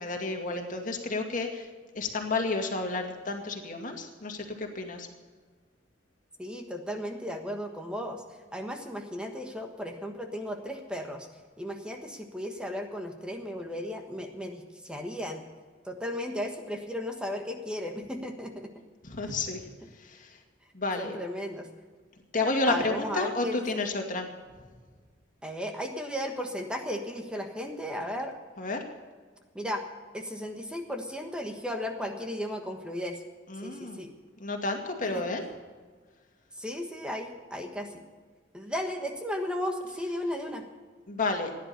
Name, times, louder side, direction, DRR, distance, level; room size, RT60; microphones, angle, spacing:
voice 1, 0.0-1.7 1.9-5.1 19.0-19.6 20.0-20.3 20.7-21.2 22.3-24.3 28.6-28.8 33.5-34.0 34.4-35.4 41.1-41.5, left 3 dB, 45° left, 3 dB, 2.3 m, -31 dB
voice 2, 6.4-8.2 8.5-11.3 11.6-15.4 15.8-18.7 21.0-21.7 22.7-23.6 25.4-28.3 29.5-29.8 30.1-33.2 33.6-34.1 35.1-35.2 36.6-38.0 38.5-40.6, equal, 5° right, 4 dB, 1.4 m, -35 dB
16.0 x 10.5 x 6.9 m, 1.5 s
head